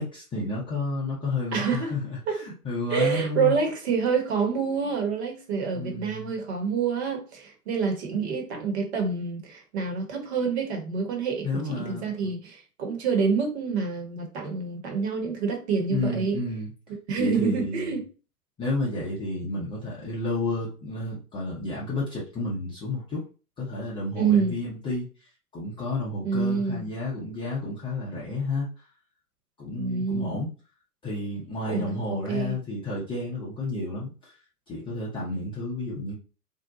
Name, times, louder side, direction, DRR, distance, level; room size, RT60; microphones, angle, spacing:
voice 1, 0.0-3.5 5.7-6.3 11.4-12.3 15.9-16.7 17.2-18.0 18.6-23.2 23.6-25.1 25.5-28.7 29.6-30.5 31.0-34.1 34.7-36.1, left 2 dB, 10° left, 0.6 m, -31 dB
voice 2, 1.5-1.9 2.3-2.4 2.9-16.4 17.1-18.0 24.1-24.6 26.2-26.9 29.8-30.4 31.7-32.6, right 5 dB, 45° right, 1.1 m, -27 dB
2.6 x 2.1 x 3.9 m
figure-of-eight pair, 105°, 46 cm